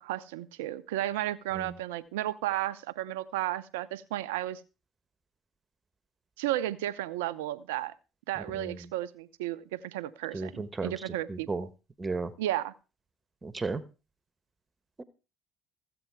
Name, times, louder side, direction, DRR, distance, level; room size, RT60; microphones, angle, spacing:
voice 1, 0.0-4.6 6.4-7.9 8.3-11.5 12.4-12.7, right 14 dB, 85° right, 15 dB, 0.7 m, -33 dB
voice 2, 8.4-8.9 10.3-11.7 12.0-12.3 13.4-13.8 15.0-15.1, right 3 dB, 25° right, 14 dB, 1.2 m, -35 dB
15.0 x 7.9 x 4.7 m, 0.33 s
hypercardioid pair, 70°, 0 cm